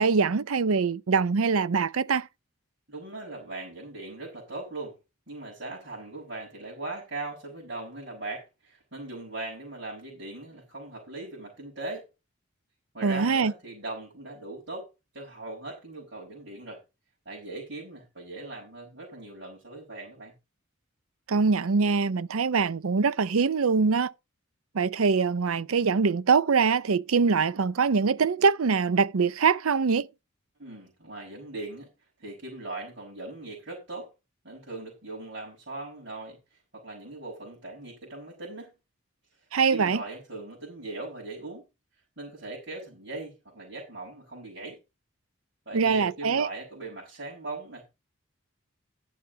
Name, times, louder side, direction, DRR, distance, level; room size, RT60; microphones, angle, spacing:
voice 1, 0.0-2.3 13.0-13.5 21.3-24.1 24.7-30.1 39.5-40.0 45.7-46.5, right 5 dB, 85° right, 0.6 m, -23 dB
voice 2, 2.9-5.0 5.3-12.1 12.9-14.9 15.1-16.8 17.3-20.3 30.6-31.9 32.2-34.1 34.4-36.4 36.7-38.7 39.7-41.6 42.2-44.8 45.7-47.8, right 2 dB, 55° right, 5.7 m, -39 dB
11.0 x 7.3 x 4.8 m
head